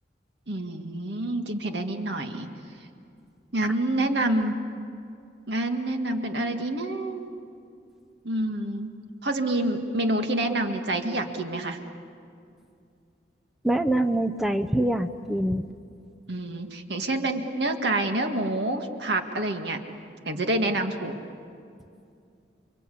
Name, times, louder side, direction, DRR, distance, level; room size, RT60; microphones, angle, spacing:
voice 1, 0.5-2.5 3.5-4.6 5.5-7.3 8.2-8.9 9.2-11.8 16.3-19.8 20.3-21.2, right 1 dB, 70° right, 5 dB, 1.9 m, -27 dB
voice 2, 13.6-15.6, right 1 dB, ahead, 6 dB, 0.6 m, -24 dB
29.5 x 24.0 x 8.5 m, 2.5 s
head